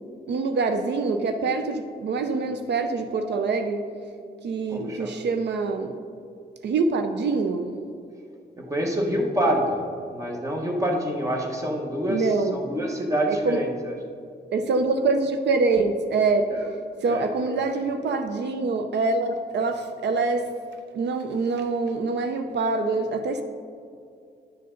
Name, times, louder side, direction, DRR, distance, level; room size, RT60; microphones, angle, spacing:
voice 1, 0.3-3.8 4.4-5.9 6.6-7.7 12.1-12.6 13.3-13.6 14.5-16.5 17.0-20.5 20.9-23.4, right 3 dB, 75° right, 7 dB, 0.5 m, -25 dB
voice 2, 4.7-5.1 8.6-9.8 10.1-13.7 16.5-16.6 17.0-17.3, equal, 20° right, 1 dB, 1.1 m, -26 dB
10.5 x 6.7 x 3.8 m, 2.5 s
wide cardioid pair, 175°, 18 cm